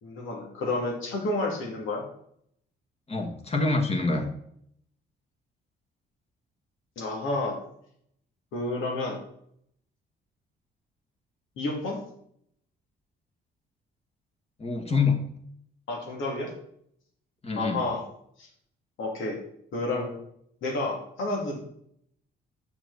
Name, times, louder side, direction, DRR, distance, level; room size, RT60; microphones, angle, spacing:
voice 1, 0.0-2.0 7.0-7.6 8.5-9.2 11.6-12.0 15.9-16.5 17.6-18.0 18.4-18.5 19.0-19.4 19.7-20.1 20.6-21.7, left 2 dB, 80° left, 0 dB, 2.7 m, -30 dB
voice 2, 3.1-4.3 14.6-15.2 17.4-17.8, left 4 dB, 30° left, 3 dB, 1.7 m, -26 dB
8.2 x 6.1 x 4.1 m, 0.69 s
cardioid pair, 90°, 20 cm